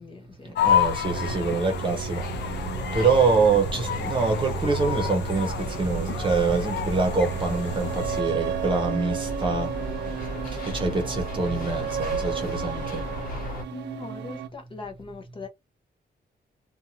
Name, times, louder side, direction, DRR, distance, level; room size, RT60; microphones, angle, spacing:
voice 1, 0.0-0.6 13.7-15.5, left 3 dB, 30° left, 0.6 m, -40 dB
sound 1, 0.5-8.2, left 8 dB, 85° left, 0.4 m, -30 dB
voice 2, 0.6-2.2 2.9-5.5 5.8-9.7 10.7-12.8, right 4 dB, 30° right, 0.8 m, -25 dB
sound 2, 1.0-14.5, right 9 dB, 80° right, 0.4 m, -34 dB
sound 3, 2.1-13.6, left 1 dB, 55° left, 1.1 m, -35 dB
2.7 x 2.3 x 2.7 m
wide cardioid pair, 170°, 18 cm